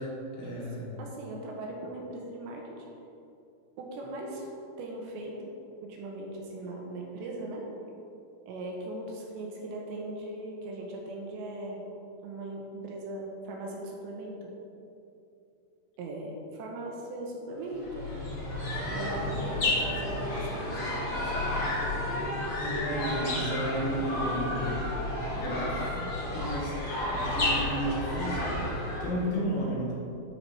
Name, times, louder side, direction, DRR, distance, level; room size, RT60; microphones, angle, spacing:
voice 1, 0.0-0.9 22.6-24.8 25.3-26.8 27.1-29.9, equal, 70° left, -5 dB, 3.9 m, -33 dB
voice 2, 1.0-2.9 3.8-4.5 4.8-5.5 5.8-7.7 8.5-11.9 12.2-14.5 16.0-18.1 18.9-21.5, right 1 dB, 75° right, -1 dB, 3.0 m, -39 dB
sound 1, 17.7-29.3, left 1 dB, 40° left, 2.1 m, -31 dB
12.5 x 4.7 x 4.3 m, 2.7 s
omnidirectional pair, 5.5 m